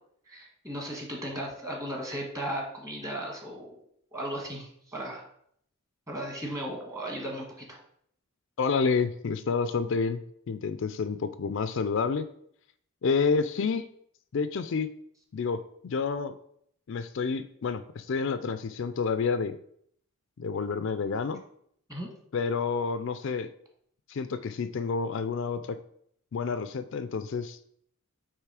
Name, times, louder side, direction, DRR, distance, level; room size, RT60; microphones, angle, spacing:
voice 1, 0.3-3.8 4.1-5.3 6.1-7.8 21.9-22.1, right 1 dB, 15° right, -1 dB, 1.5 m, -36 dB
voice 2, 8.6-10.2 10.5-12.3 13.0-13.8 14.3-14.9 15.3-16.3 16.9-19.6 20.4-21.4 22.3-23.5 24.1-25.8 26.3-27.6, left 5 dB, 60° left, 11 dB, 0.4 m, -29 dB
8.2 x 3.1 x 4.8 m, 0.68 s
head